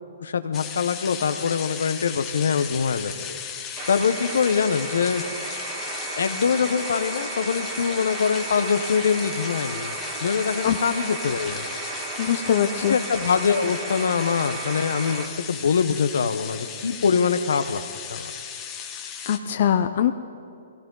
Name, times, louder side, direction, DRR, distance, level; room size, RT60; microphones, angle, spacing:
voice 1, 0.2-3.4 3.9-5.2 6.1-9.9 10.2-11.7 12.9-17.8 18.1-18.3, left 6 dB, 75° left, 11 dB, 0.9 m, -24 dB
sound 1, 0.5-19.4, left 7 dB, 20° left, 1.5 m, -36 dB
sound 2, 3.8-15.3, right 4 dB, 40° right, 2.4 m, -34 dB
voice 2, 12.2-13.0 19.3-20.1, left 9 dB, 55° left, 7 dB, 0.6 m, -22 dB
21.5 x 16.5 x 3.9 m, 2.5 s
hypercardioid pair, 135°, 0 cm